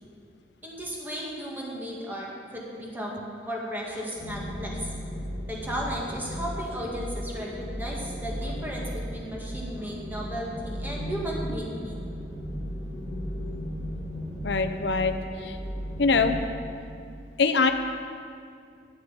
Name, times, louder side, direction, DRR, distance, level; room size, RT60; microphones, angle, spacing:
voice 1, 0.6-2.3 2.5-4.9 5.5-12.2, equal, 10° right, -4 dB, 2.0 m, -35 dB
sound 1, 4.1-16.3, equal, 35° right, 3.2 m, -35 dB
voice 2, 14.4-15.6 16.0-16.4 17.4-17.7, left 4 dB, 70° left, 8 dB, 0.6 m, -23 dB
9.4 x 8.0 x 8.3 m, 2.4 s
head